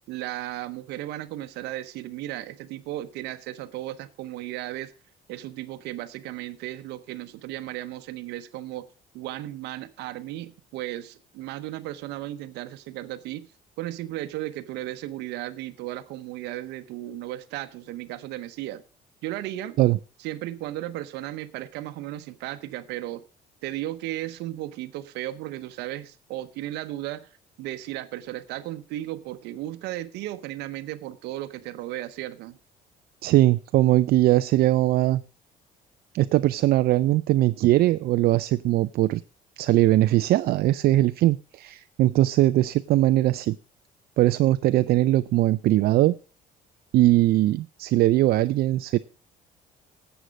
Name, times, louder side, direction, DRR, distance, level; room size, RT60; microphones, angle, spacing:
voice 1, 0.1-4.9 5.3-8.8 9.1-13.5 13.8-18.8 19.2-19.8 20.2-23.2 23.6-27.3 27.6-32.6, right 15 dB, 85° right, 12 dB, 0.9 m, -35 dB
voice 2, 33.2-35.2 36.1-39.2 39.6-43.6 44.2-46.2 46.9-49.0, right 15 dB, 65° right, 15 dB, 0.4 m, -20 dB
11.5 x 8.1 x 5.2 m, 0.36 s
cardioid pair, 110°, 17 cm